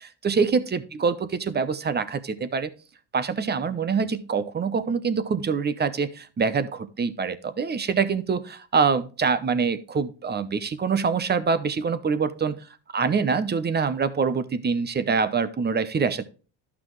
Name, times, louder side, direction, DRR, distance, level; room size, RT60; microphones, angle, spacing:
voice 1, 0.0-2.7 3.1-12.6 12.9-16.2, right 5 dB, 25° right, 14 dB, 0.8 m, -25 dB
11.5 x 6.0 x 3.1 m, 0.36 s
cardioid pair, 105°, 43 cm